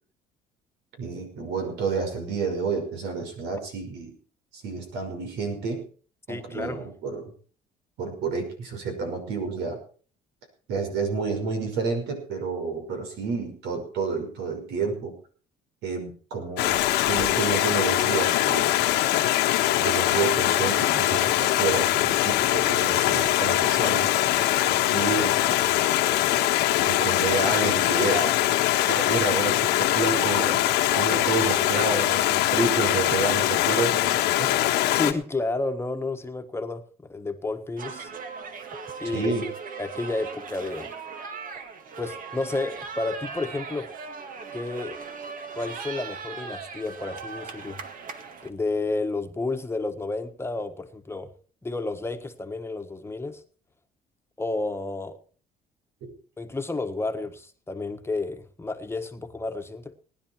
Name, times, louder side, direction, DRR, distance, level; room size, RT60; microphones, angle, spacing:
voice 1, 1.0-4.1 4.5-5.9 6.3-7.3 8.0-9.8 10.7-15.1 15.8-18.8 19.8-25.9 26.8-28.5 28.9-34.6 39.1-39.5, right 4 dB, 85° right, 5 dB, 5.7 m, -30 dB
voice 2, 6.3-6.8 34.9-38.1 39.0-39.3 39.8-40.9 42.0-43.9 44.5-45.0 45.5-47.8 48.4-51.3 51.6-53.4 54.4-55.2 56.4-60.0, left 2 dB, 15° left, 6 dB, 1.4 m, -31 dB
Stream, 16.6-35.1, left 14 dB, 90° left, 1.4 m, -22 dB
sound 1, 37.8-48.5, right 5 dB, 55° right, 1.9 m, -38 dB
19.5 x 10.5 x 4.6 m, 0.41 s
cardioid pair, 110°, 17 cm